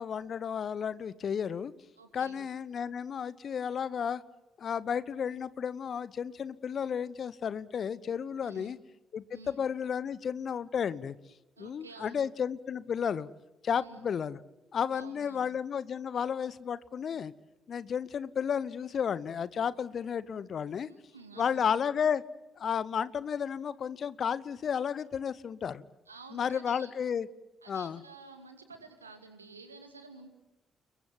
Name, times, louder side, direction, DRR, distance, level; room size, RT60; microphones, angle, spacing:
voice 1, 0.0-1.7 2.1-4.2 4.6-8.8 9.1-11.1 11.6-13.3 13.6-14.4 14.7-17.3 17.7-20.9 21.4-22.2 22.6-25.8 26.3-27.3 27.7-28.0, left 7 dB, 50° left, 18 dB, 1.0 m, -32 dB
voice 2, 2.0-2.4 8.4-8.8 9.3-9.6 11.6-12.2 13.7-14.1 14.9-15.5 20.8-21.6 26.1-26.9 27.6-30.3, right 3 dB, 85° right, 6 dB, 2.3 m, -51 dB
29.5 x 22.0 x 7.7 m, 0.99 s
figure-of-eight pair, 40°, 0 cm